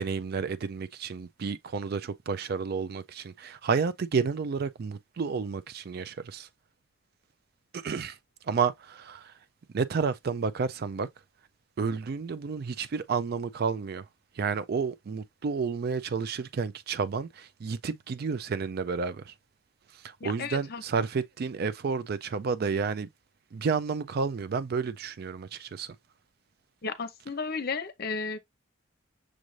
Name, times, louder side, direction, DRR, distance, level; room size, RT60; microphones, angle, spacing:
voice 1, 0.0-6.5 7.7-8.2 8.5-9.3 9.7-11.1 11.8-14.0 14.4-19.3 20.0-23.1 23.5-25.9, right 5 dB, 45° right, 0.3 m, -31 dB
voice 2, 20.2-20.8 26.8-28.4, left 4 dB, 45° left, 0.7 m, -33 dB
6.3 x 2.5 x 3.1 m
head